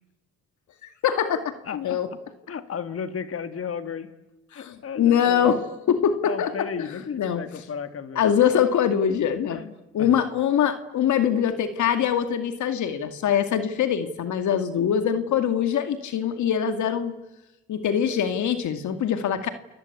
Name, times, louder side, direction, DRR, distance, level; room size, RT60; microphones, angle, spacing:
voice 1, 1.0-1.4 1.7-2.1 4.5-6.5 7.2-7.4 8.2-9.6 9.9-17.2 17.7-19.5, left 8 dB, 75° left, 9 dB, 2.3 m, -23 dB
voice 2, 1.7-2.2 2.5-4.1 4.5-5.5 6.2-8.5 9.5-10.1, left 6 dB, 50° left, 10 dB, 2.4 m, -34 dB
29.0 x 21.5 x 8.6 m, 0.98 s
cardioid pair, 90°, 30 cm